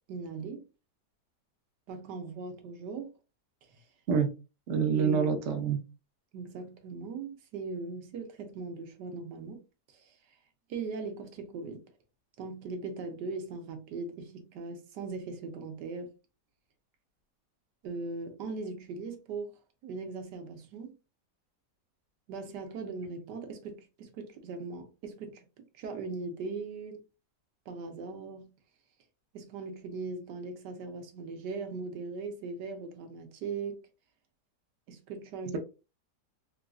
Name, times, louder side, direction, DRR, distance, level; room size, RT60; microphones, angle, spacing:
voice 1, 0.1-0.6 1.9-3.1 3.7-3.8 4.9-5.3 6.3-9.6 9.9-10.2 10.7-11.8 12.4-16.1 17.8-19.5 19.8-20.9 22.3-25.5 25.8-27.0 27.7-28.5 29.3-33.8 34.9-35.6, right 4 dB, 80° right, 1.3 m, -39 dB
voice 2, 4.7-5.8, right 6 dB, 55° right, 0.8 m, -26 dB
3.9 x 2.5 x 2.3 m
omnidirectional pair, 1.8 m